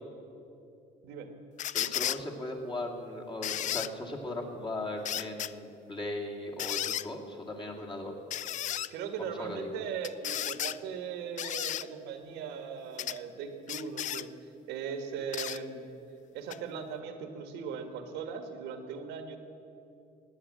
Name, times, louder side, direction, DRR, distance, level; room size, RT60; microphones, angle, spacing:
sound 1, 1.6-2.2 3.4-3.9 5.0-5.5 6.6-7.1 8.3-8.9 10.0-10.8 11.4-11.8 13.0-13.2 13.7-14.3 15.3-15.6 16.5-16.6, left 11 dB, 45° left, 0.4 m, -33 dB
voice 1, 1.7-8.1 9.2-9.8, left 1 dB, 30° left, 1 dB, 2.5 m, -38 dB
voice 2, 8.9-14.3 14.7-15.8 16.3-19.4, right 6 dB, 90° right, 6 dB, 1.6 m, -39 dB
17.5 x 9.9 x 7.5 m, 2.7 s
cardioid pair, 110°, 17 cm